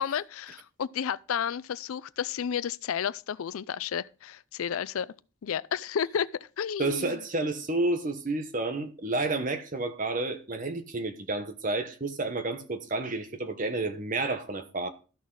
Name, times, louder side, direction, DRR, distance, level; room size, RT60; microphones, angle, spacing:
voice 1, 0.0-5.1 5.4-6.3 6.6-7.2, left 8 dB, 80° left, 0.4 m, -31 dB
voice 2, 6.8-14.9, right 2 dB, 35° right, 1.0 m, -30 dB
13.0 x 6.2 x 3.9 m
head